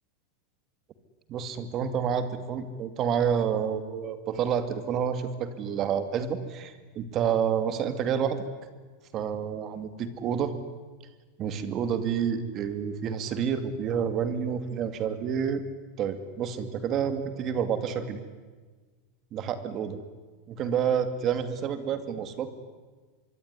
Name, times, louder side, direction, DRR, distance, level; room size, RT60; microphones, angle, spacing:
voice 1, 1.3-8.4 9.1-10.5 11.4-15.6 16.0-18.2 19.3-20.0 20.5-22.5, right 7 dB, 35° right, 10 dB, 2.5 m, -29 dB
25.5 x 23.5 x 9.9 m, 1.4 s
supercardioid pair, 155°, 0 cm